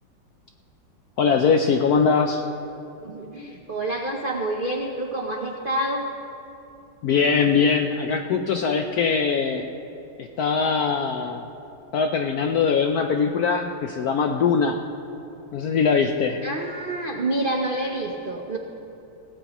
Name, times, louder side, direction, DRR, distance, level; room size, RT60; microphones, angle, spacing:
voice 1, 1.2-2.4 7.0-9.7 10.2-11.5 11.9-14.8 15.5-16.4, left 5 dB, 75° left, 5 dB, 0.8 m, -22 dB
voice 2, 3.0-6.1 16.4-18.6, right 1 dB, 80° right, 1 dB, 0.4 m, -28 dB
17.5 x 16.5 x 3.0 m, 2.8 s
omnidirectional pair, 2.2 m